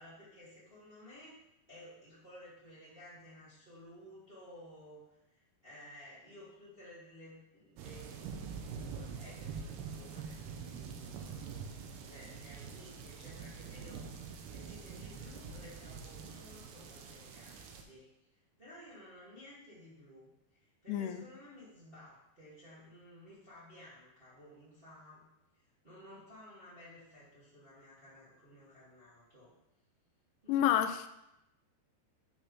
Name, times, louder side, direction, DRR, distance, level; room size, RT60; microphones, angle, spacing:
voice 1, 0.0-1.4 1.7-11.4 12.0-14.1 14.5-18.0 18.6-25.2 25.5-29.5 30.4-30.6, left 1 dB, 25° right, -10 dB, 1.2 m, -55 dB
sound 1, 7.8-17.8, right 6 dB, 80° right, 2.4 m, -45 dB
voice 2, 20.9-21.2 30.5-31.1, left 10 dB, 90° left, 9 dB, 2.9 m, -29 dB
9.1 x 5.3 x 3.3 m, 0.86 s
omnidirectional pair, 5.2 m